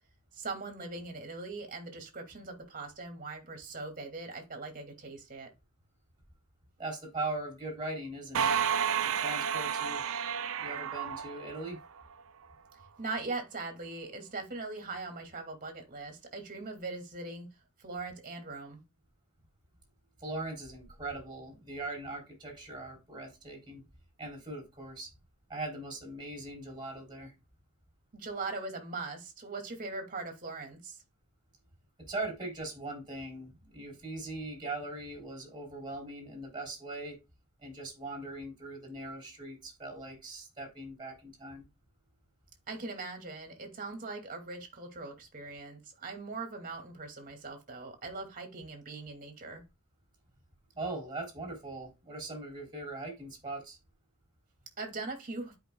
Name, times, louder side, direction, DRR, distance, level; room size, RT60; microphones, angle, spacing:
voice 1, 0.3-5.5 13.0-17.5 17.8-18.8 28.1-31.0 42.7-49.6 54.8-55.5, right 3 dB, 40° right, 2.3 m, -40 dB
voice 2, 6.8-8.5 9.0-10.0 10.6-11.8 20.2-23.8 24.2-25.1 25.5-27.3 32.0-37.2 37.6-41.7 50.8-53.8, right 2 dB, 20° right, 3.6 m, -40 dB
sound 1, 8.3-12.0, right 8 dB, 65° right, 0.7 m, -31 dB
12.5 x 5.2 x 2.2 m
head